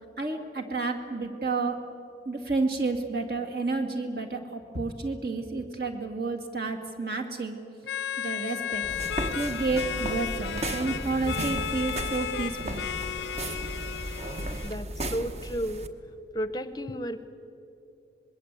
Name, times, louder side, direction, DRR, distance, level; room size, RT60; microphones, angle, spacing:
voice 1, 0.2-1.8 2.3-7.6 8.2-8.8 9.3-12.8, right 3 dB, 55° right, 3 dB, 2.3 m, -30 dB
sound 1, 7.8-14.7, left 8 dB, 80° left, 0.5 m, -34 dB
sound 2, 8.8-14.7, equal, 15° right, 1.2 m, -42 dB
sound 3, 8.9-15.9, right 1 dB, 35° right, 1.1 m, -35 dB
voice 2, 14.6-15.9 16.3-17.3, equal, 20° left, 12 dB, 0.8 m, -33 dB
25.5 x 21.0 x 8.3 m, 2.8 s
head